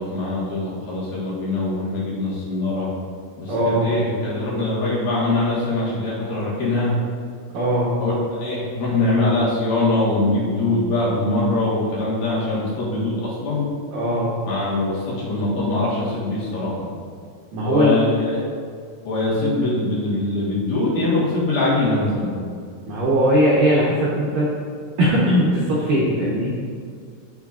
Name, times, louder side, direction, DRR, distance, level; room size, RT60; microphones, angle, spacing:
voice 1, 0.0-2.9 3.4-7.0 8.0-13.7 14.5-16.9 17.6-18.4 19.1-22.4, left 2 dB, 60° left, -7 dB, 3.0 m, -23 dB
voice 2, 3.5-3.9 7.5-7.9 13.9-14.3 17.5-18.0 22.9-24.5 25.0-26.5, equal, 70° right, -7 dB, 2.0 m, -19 dB
14.0 x 7.2 x 2.5 m, 2.2 s
omnidirectional pair, 5.5 m